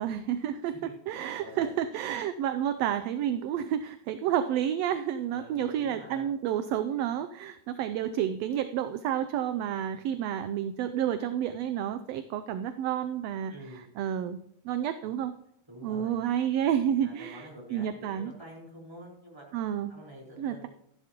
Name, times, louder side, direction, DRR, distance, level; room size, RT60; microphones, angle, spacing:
voice 1, 0.0-13.5 14.0-14.4 14.6-15.3 15.8-17.4 17.7-18.3 19.5-19.9 20.4-20.7, right 10 dB, 80° right, 10 dB, 1.5 m, -30 dB
voice 2, 0.6-1.7 5.3-6.3 13.5-13.9 15.7-16.2 17.0-19.4 19.9-20.7, right 1 dB, 10° right, -3 dB, 4.2 m, -47 dB
14.5 x 11.0 x 3.0 m, 0.76 s
omnidirectional pair, 3.4 m